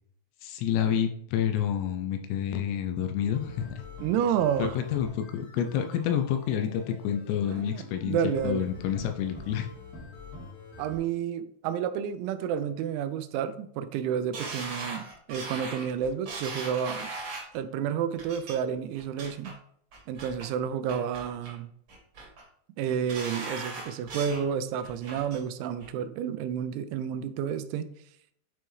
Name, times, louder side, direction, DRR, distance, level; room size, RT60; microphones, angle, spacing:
voice 1, 0.4-3.7 4.6-8.2 8.4-9.7, left 9 dB, 80° left, 6 dB, 2.7 m, -28 dB
sound 1, 3.3-11.0, left 3 dB, 55° left, 3.1 m, -46 dB
voice 2, 4.0-4.8 7.4-8.7 10.8-17.1 17.5-19.5 20.1-21.7 22.8-27.9, right 8 dB, 85° right, 12 dB, 2.9 m, -30 dB
sound 2, 14.3-17.6 18.2-18.5 19.0-19.5 19.9-20.5 20.9-21.6 21.9-22.4 22.8-24.5 24.8-25.4 25.8-25.9, right 3 dB, 50° right, 1.6 m, -39 dB
9.3 x 4.3 x 3.1 m, 0.66 s
omnidirectional pair, 5.3 m